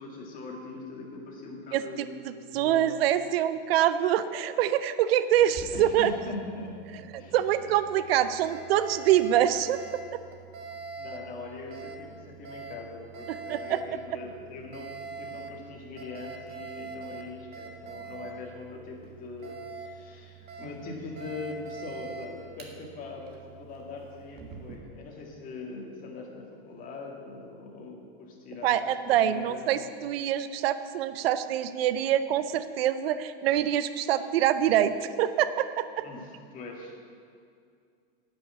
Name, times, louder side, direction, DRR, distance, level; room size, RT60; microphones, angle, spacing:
voice 1, 0.0-2.2 2.5-3.0 5.7-7.4 7.6-7.7 8.1-8.2 11.0-28.8 29.1-29.8 36.0-36.9, left 3 dB, 25° left, -1 dB, 2.2 m, -41 dB
voice 2, 1.7-6.1 7.3-10.0 13.3-13.8 28.6-36.1, right 11 dB, 75° right, 12 dB, 0.6 m, -25 dB
Alarm, 5.4-24.8, right 4 dB, 30° right, 1.5 m, -44 dB
10.0 x 6.2 x 8.3 m, 2.3 s
supercardioid pair, 140°, 31 cm